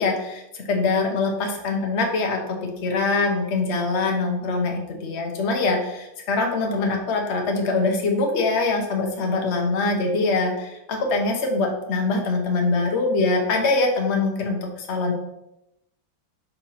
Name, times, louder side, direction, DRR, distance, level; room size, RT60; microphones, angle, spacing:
voice 1, 0.0-15.1, left 3 dB, 45° left, 1 dB, 1.1 m, -23 dB
4.4 x 4.1 x 5.7 m, 0.87 s
omnidirectional pair, 2.1 m